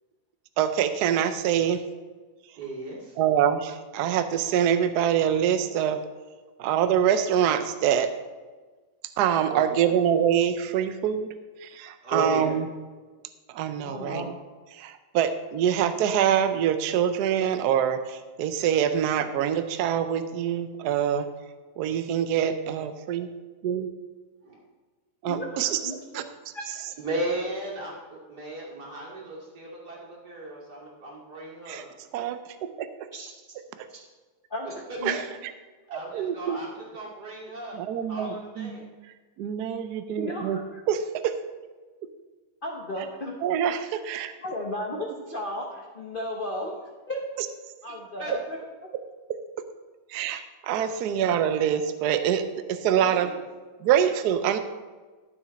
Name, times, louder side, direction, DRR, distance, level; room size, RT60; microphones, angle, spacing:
voice 1, 0.6-1.8 3.2-6.0 6.6-8.1 9.2-11.3 11.6-12.7 13.5-14.3 14.7-21.3 21.8-23.3 23.6-23.9 25.2-25.8 26.1-26.2 31.7-31.8 32.1-32.9 33.8-33.9 35.0-35.5 35.9-36.6 37.7-38.8 39.4-40.6 40.9-41.4 43.4-44.3 44.7-44.8 49.3-49.4 50.1-53.3 53.8-54.6, right 9 dB, 70° right, 10 dB, 0.9 m, -25 dB
voice 2, 2.6-3.2 9.4-9.9 12.0-12.6 27.0-31.9 34.9-35.2 35.9-37.8 38.1-38.8 48.2-48.3 52.9-53.4, right 2 dB, 50° right, -4 dB, 2.8 m, -35 dB
voice 3, 13.8-14.3 25.2-26.2 26.5-26.7 33.1-33.3 33.9-34.0 34.5-35.2 40.2-40.8 42.6-43.4 44.4-47.2 47.8-48.9, left 1 dB, 50° left, 0 dB, 0.6 m, -35 dB
12.0 x 7.3 x 4.2 m, 1.3 s
omnidirectional pair, 2.4 m